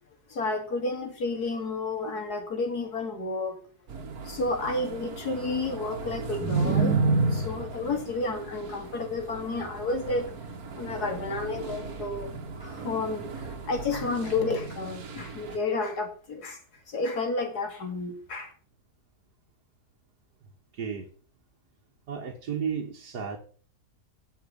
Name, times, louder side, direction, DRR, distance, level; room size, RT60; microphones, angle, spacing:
voice 1, 0.3-3.6 4.3-7.0 7.2-10.3 10.8-12.3 12.6-16.6 16.9-18.5, left 3 dB, 75° left, 5 dB, 3.1 m, -31 dB
sound 1, 3.9-15.6, right 3 dB, 65° right, 1.9 m, -32 dB
voice 2, 20.7-21.1 22.1-23.4, right 7 dB, 80° right, 1 dB, 2.0 m, -33 dB
10.5 x 7.0 x 7.1 m, 0.42 s
omnidirectional pair, 1.7 m